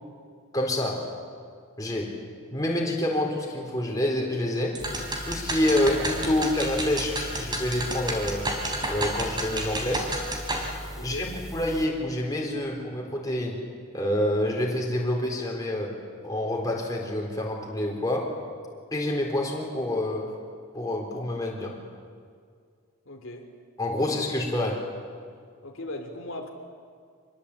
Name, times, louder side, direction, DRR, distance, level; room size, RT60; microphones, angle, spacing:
voice 1, 0.5-1.1 1.8-2.2 2.5-4.8 5.2-8.5 8.9-10.1 11.0-13.6 13.9-16.0 16.2-18.3 18.9-20.3 20.7-21.8 23.8-24.9, left 1 dB, 15° left, -1 dB, 4.0 m, -27 dB
sound 1, 4.7-10.7, right 1 dB, 20° right, 3.9 m, -31 dB
sound 2, 4.8-11.9, right 1 dB, ahead, 2.8 m, -40 dB
voice 2, 10.9-11.3 23.1-23.5 24.0-24.1 25.6-26.5, left 1 dB, 65° left, 3 dB, 2.9 m, -38 dB
26.0 x 21.5 x 8.6 m, 2.1 s
head